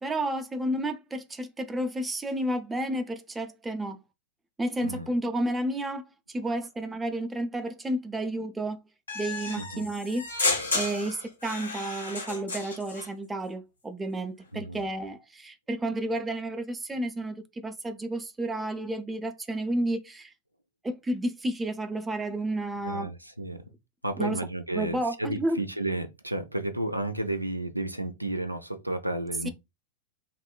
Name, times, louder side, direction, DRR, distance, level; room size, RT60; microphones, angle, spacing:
voice 1, 0.0-4.0 4.6-8.8 9.1-10.2 10.7-20.3 20.8-23.1 24.2-24.4 24.7-25.6, right 1 dB, 10° right, 0.4 m, -31 dB
sound 1, 9.1-13.1, left 3 dB, 75° left, 0.8 m, -32 dB
voice 2, 9.6-9.9 14.5-14.8 22.8-23.6 24.0-29.5, right 1 dB, 85° right, 0.3 m, -32 dB
2.9 x 2.1 x 2.2 m
figure-of-eight pair, 90°, 0 cm